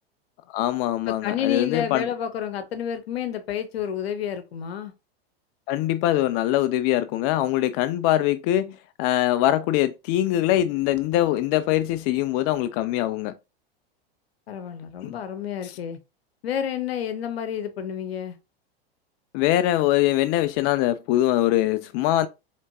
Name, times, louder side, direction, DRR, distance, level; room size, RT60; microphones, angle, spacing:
voice 1, 0.5-2.1 5.7-13.3 15.0-15.1 19.3-22.3, left 14 dB, 40° left, 0.4 m, -23 dB
voice 2, 1.1-4.9 14.5-16.0 16.4-18.4, left 9 dB, 75° left, 1.0 m, -30 dB
4.2 x 3.3 x 2.9 m
hypercardioid pair, 105°, 31 cm